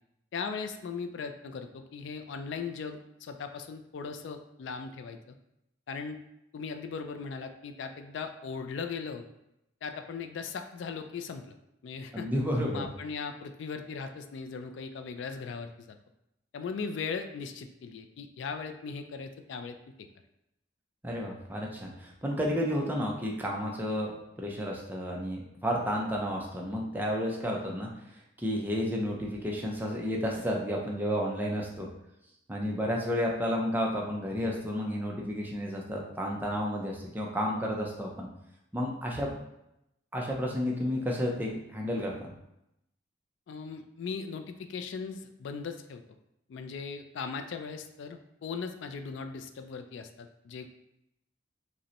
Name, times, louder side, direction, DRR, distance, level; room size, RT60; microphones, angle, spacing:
voice 1, 0.3-5.4 5.9-6.2 6.5-9.2 9.8-11.5 11.8-12.3 12.7-16.0 16.5-19.8 43.5-46.0 46.5-50.7, left 5 dB, 65° left, 7 dB, 0.3 m, -38 dB
voice 2, 12.1-12.9 21.0-27.9 28.4-31.9 32.5-38.3 38.7-39.3 40.1-42.3, equal, 10° right, -1 dB, 0.4 m, -31 dB
5.0 x 2.1 x 2.9 m, 0.84 s
head